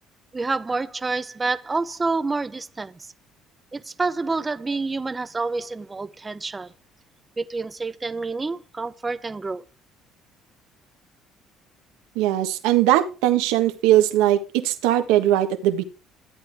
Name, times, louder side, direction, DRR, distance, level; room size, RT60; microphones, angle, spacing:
voice 1, 0.3-3.1 3.7-6.7 7.4-9.6, right 3 dB, 25° right, 0.8 m, -28 dB
voice 2, 12.1-15.8, right 13 dB, 85° right, 1.5 m, -20 dB
13.5 x 8.7 x 3.5 m
supercardioid pair, 80°, 0 cm